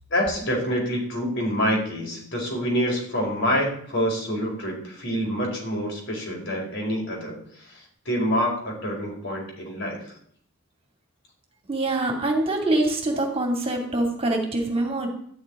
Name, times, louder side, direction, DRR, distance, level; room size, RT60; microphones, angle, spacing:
voice 1, 0.1-10.1, equal, 55° left, -1 dB, 4.8 m, -27 dB
voice 2, 11.7-15.1, right 2 dB, 25° right, 2 dB, 2.5 m, -24 dB
12.5 x 6.6 x 9.6 m, 0.63 s
head